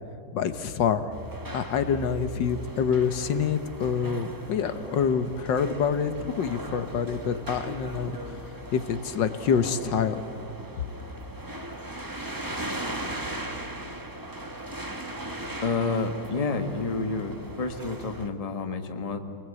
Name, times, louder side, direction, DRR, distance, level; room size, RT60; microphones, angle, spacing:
voice 1, 0.3-1.1 1.5-8.2 8.7-10.2, left 7 dB, 75° left, 11 dB, 1.7 m, -26 dB
sound 1, 1.1-18.3, right 1 dB, 15° right, 1.2 m, -38 dB
voice 2, 15.6-19.2, left 3 dB, 20° left, 7 dB, 1.2 m, -29 dB
26.0 x 20.0 x 8.3 m, 2.6 s
omnidirectional pair, 2.0 m